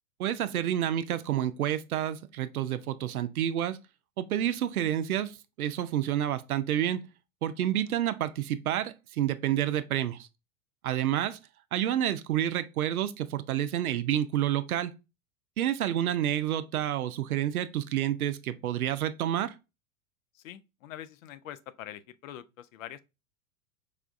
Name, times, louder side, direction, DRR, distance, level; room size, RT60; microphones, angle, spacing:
voice 1, 0.2-3.8 4.2-7.0 7.4-10.3 10.8-11.4 11.7-14.9 15.6-19.5, right 11 dB, 80° right, 0.5 m, -29 dB
voice 2, 20.3-23.0, left 11 dB, 65° left, 0.5 m, -44 dB
4.9 x 2.3 x 2.5 m
hypercardioid pair, 100°, 43 cm